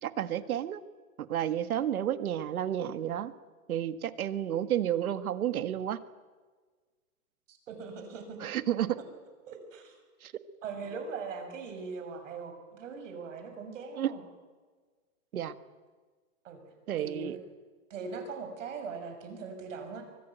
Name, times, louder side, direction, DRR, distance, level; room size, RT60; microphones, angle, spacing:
voice 1, 0.0-0.8 1.3-3.3 3.7-6.0 8.4-9.0 10.2-10.3 14.0-14.1 15.3-15.5 16.9-17.4, right 11 dB, 90° right, 12 dB, 1.8 m, -31 dB
voice 2, 7.5-8.4 9.4-10.0 10.6-14.2 16.4-17.4 17.9-20.0, right 5 dB, 60° right, 6 dB, 6.3 m, -41 dB
24.5 x 19.5 x 9.3 m, 1.4 s
supercardioid pair, 175°, 42 cm